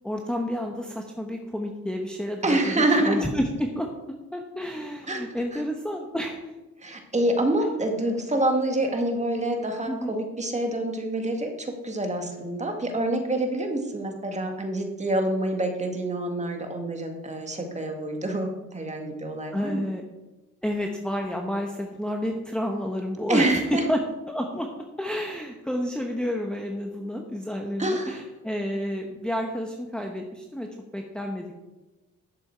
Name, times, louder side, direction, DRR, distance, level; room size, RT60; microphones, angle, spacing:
voice 1, 0.0-3.9 4.3-6.5 7.6-7.7 9.9-10.1 19.5-20.0 20.6-24.7 25.0-31.5, equal, 5° left, 1 dB, 1.0 m, -30 dB
voice 2, 2.4-3.2 5.1-5.2 5.5-5.6 6.8-19.8 23.3-23.8 27.8-28.2, right 1 dB, 25° right, 3 dB, 1.8 m, -26 dB
11.0 x 6.8 x 4.5 m, 1.1 s
cardioid pair, 90°, 30 cm